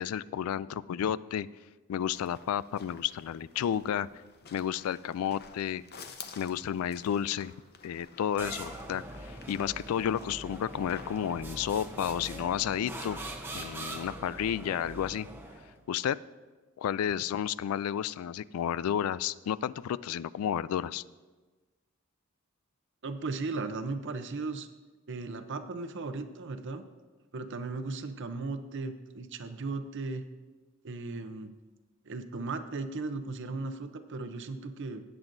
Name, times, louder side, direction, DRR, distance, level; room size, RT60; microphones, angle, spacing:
voice 1, 0.0-1.5 1.9-4.1 4.5-5.8 6.4-7.5 7.8-13.2 13.5-15.3 15.9-16.2 16.8-21.0, left 9 dB, 90° left, 17 dB, 0.3 m, -31 dB
sound 1, 2.0-12.4, left 5 dB, 50° left, 0.8 m, -52 dB
sound 2, 8.4-15.8, right 1 dB, 10° right, 0.8 m, -42 dB
voice 2, 23.0-24.7 25.1-26.8 27.3-30.3 30.8-31.5 32.1-35.0, right 3 dB, 60° right, 9 dB, 0.7 m, -36 dB
17.5 x 7.9 x 2.6 m, 1.3 s
head